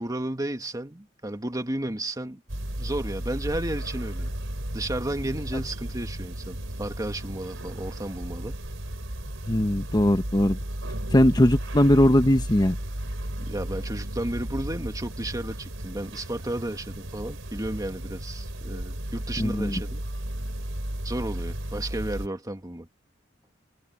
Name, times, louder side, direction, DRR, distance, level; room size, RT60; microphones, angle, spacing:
voice 1, 0.0-2.4 2.8-4.3 4.7-8.6 13.4-20.0 21.0-22.9, right 1 dB, 20° right, 2.0 m, -33 dB
sound 1, 2.5-22.3, right 1 dB, 90° right, 3.6 m, -34 dB
voice 2, 9.5-10.6 11.1-12.8 19.4-19.8, left 1 dB, 20° left, 1.0 m, -20 dB
head